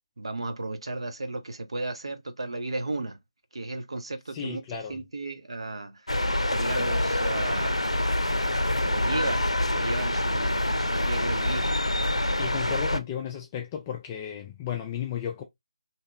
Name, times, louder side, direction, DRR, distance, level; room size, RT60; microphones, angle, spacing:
voice 1, 0.2-3.2 3.5-7.8 8.4-11.7, right 2 dB, 65° right, 0.6 m, -35 dB
voice 2, 4.3-5.0 12.4-15.4, left 8 dB, 15° left, 0.3 m, -34 dB
sound 1, 6.1-13.0, left 1 dB, 90° left, 0.5 m, -26 dB
2.8 x 2.8 x 2.2 m
figure-of-eight pair, 155°, 3 cm